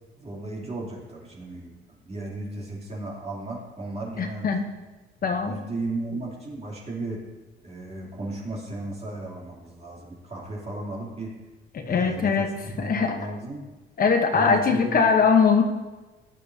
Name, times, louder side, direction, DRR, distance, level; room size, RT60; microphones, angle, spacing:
voice 1, 0.2-4.6 5.4-7.2 7.6-11.4 11.8-13.7 14.3-15.1, right 2 dB, 30° right, -3 dB, 3.1 m, -35 dB
voice 2, 4.2-4.6 5.2-5.6 11.7-13.2 14.0-15.6, left 5 dB, 45° left, 4 dB, 1.0 m, -21 dB
15.5 x 10.5 x 2.8 m, 1.2 s
cardioid pair, 115°, 21 cm